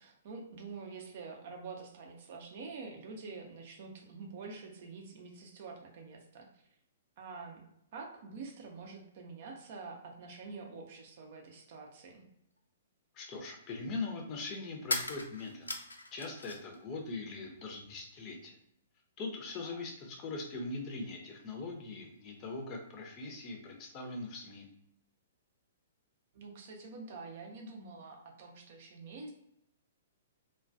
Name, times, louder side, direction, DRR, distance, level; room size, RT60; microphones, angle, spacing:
voice 1, 0.0-6.6 7.2-7.6 7.9-12.3 19.6-19.8 26.3-29.3, right 4 dB, 50° right, 1 dB, 0.5 m, -47 dB
sound 1, 12.6-12.7 14.8-16.8 17.1-17.9, left 2 dB, 85° left, 0.3 m, -39 dB
voice 2, 13.1-15.7 16.1-18.5 19.2-24.7, left 3 dB, 30° left, 1 dB, 0.5 m, -41 dB
2.2 x 2.2 x 2.5 m, 0.76 s
figure-of-eight pair, 115°, 0 cm